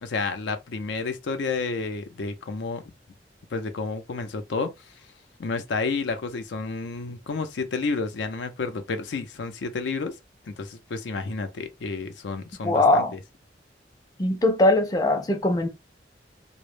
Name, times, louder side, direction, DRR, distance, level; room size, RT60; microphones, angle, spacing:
voice 1, 0.0-2.8 3.5-4.7 5.4-10.2 10.5-13.0, left 4 dB, 80° left, 0.5 m, -30 dB
voice 2, 12.6-13.1 14.2-15.7, left 2 dB, 20° left, 0.4 m, -21 dB
2.1 x 2.0 x 3.0 m
head